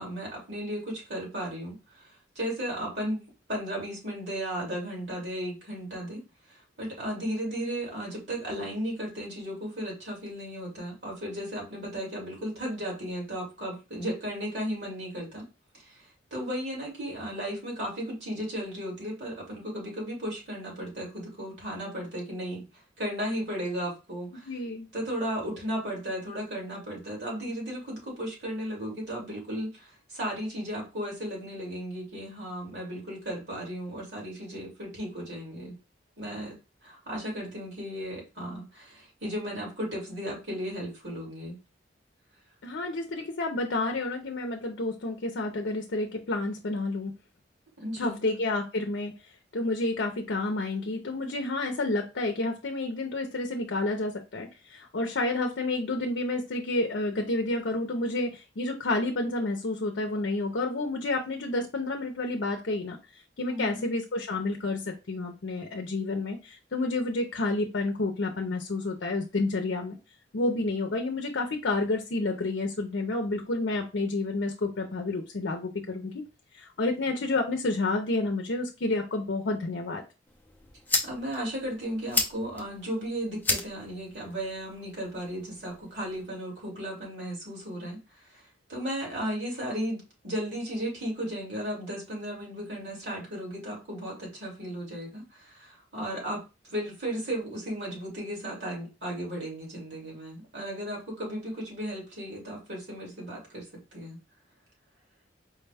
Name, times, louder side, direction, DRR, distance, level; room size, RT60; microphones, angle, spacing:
voice 1, 0.0-3.2 3.5-6.2 6.5-15.5 15.8-22.6 23.0-24.5 24.9-35.7 36.2-36.6 36.8-41.6 47.8-48.2 63.4-63.8 81.0-88.0 88.3-88.4 88.7-103.7 103.9-104.2, equal, 65° right, -2 dB, 2.2 m, -35 dB
voice 2, 24.5-24.9 42.6-47.1 48.0-49.1 49.5-63.0 63.4-70.0 70.3-76.2 76.5-80.0, left 2 dB, 75° left, 3 dB, 0.6 m, -30 dB
sound 1, 80.3-86.3, left 3 dB, 10° left, 0.5 m, -34 dB
4.7 x 2.2 x 3.4 m, 0.28 s
head